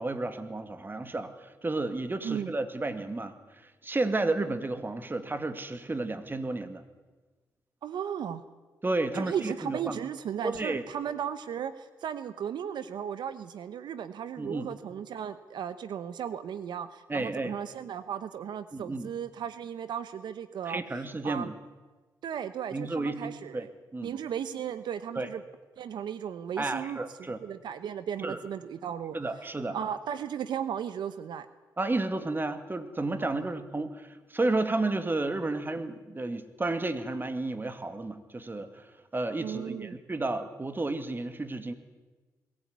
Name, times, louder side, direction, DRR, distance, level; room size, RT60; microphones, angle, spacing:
voice 1, 0.0-3.4 3.6-6.8 8.8-10.0 10.4-10.8 14.4-14.7 17.1-17.5 18.7-19.1 20.6-21.5 22.7-23.7 23.9-24.1 25.1-25.3 26.6-27.4 28.2-28.4 29.1-29.8 31.8-41.7, right 2 dB, 30° right, 10 dB, 2.3 m, -32 dB
voice 2, 7.8-8.4 9.1-20.8 21.2-21.5 22.2-23.7 24.0-25.4 25.8-29.2 29.7-31.5 33.2-33.4 39.4-40.0, right 8 dB, 80° right, 13 dB, 0.9 m, -36 dB
22.0 x 16.0 x 9.5 m, 1.3 s
cardioid pair, 60°, 8 cm